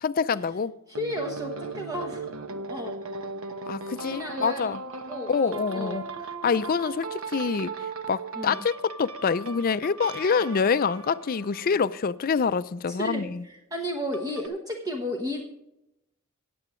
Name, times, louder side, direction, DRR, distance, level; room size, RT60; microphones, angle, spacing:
voice 1, 0.0-0.7 3.7-4.8 5.3-6.1 6.4-7.7 8.1-13.4, left 5 dB, 45° left, 0.4 m, -26 dB
voice 2, 0.9-2.3 2.7-3.0 4.1-6.0 8.3-8.6 12.9-15.4, equal, 20° right, 1.0 m, -33 dB
sound 1, 0.9-12.3 14.1-14.5, right 3 dB, 75° right, 1.0 m, -38 dB
18.5 x 7.8 x 3.1 m
head